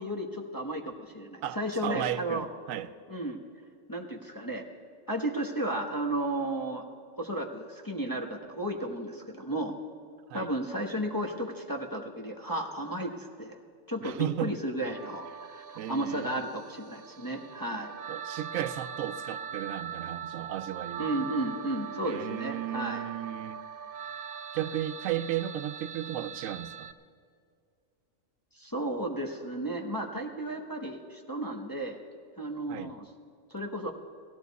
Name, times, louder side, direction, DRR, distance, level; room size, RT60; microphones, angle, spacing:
voice 1, 0.0-2.5 3.1-3.4 3.9-4.6 5.1-6.8 7.2-9.7 10.3-13.6 13.9-17.9 21.0-23.0 28.5-32.0 32.4-33.1 33.5-33.9, right 1 dB, 15° left, -1 dB, 0.9 m, -33 dB
voice 2, 1.4-2.9 10.3-10.5 14.0-14.6 15.8-16.4 18.1-21.1 22.0-23.6 24.5-26.9 32.7-32.9, right 11 dB, 85° right, 12 dB, 1.0 m, -34 dB
sound 1, 14.9-26.9, right 7 dB, 60° right, 0.6 m, -41 dB
17.0 x 14.5 x 4.1 m, 2.2 s
omnidirectional pair, 1.4 m